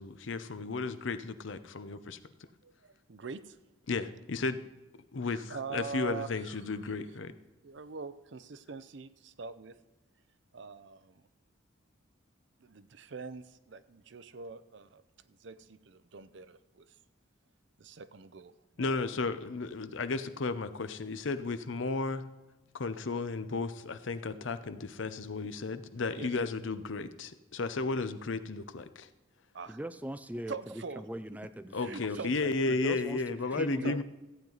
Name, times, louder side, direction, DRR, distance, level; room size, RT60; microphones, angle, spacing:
voice 1, 0.0-2.2 3.9-4.6 5.1-7.3 18.8-22.2 22.7-29.1 31.7-34.0, left 3 dB, 70° left, 0.7 m, -34 dB
voice 2, 2.6-3.6 5.3-6.6 7.6-9.8 10.5-11.2 12.6-15.0 15.3-17.0 17.8-19.0 26.1-26.3 29.5-29.8 30.5-31.0 31.8-33.0 33.4-34.0, right 4 dB, 60° right, 0.5 m, -44 dB
voice 3, 29.7-32.1 32.4-34.0, right 1 dB, 10° right, 0.3 m, -41 dB
14.5 x 8.9 x 4.0 m
head